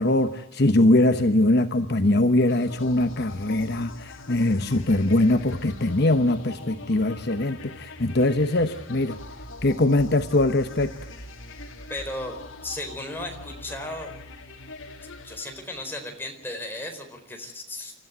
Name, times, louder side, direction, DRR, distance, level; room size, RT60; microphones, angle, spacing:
voice 1, 0.0-9.2 9.6-10.9, left 2 dB, 50° left, 8 dB, 1.0 m, -22 dB
sound 1, 2.5-16.1, left 2 dB, 75° left, 3.0 m, -42 dB
voice 2, 11.9-12.4 12.6-14.1 15.2-17.9, left 1 dB, 10° left, 2 dB, 4.4 m, -35 dB
28.5 x 14.0 x 9.4 m, 0.74 s
head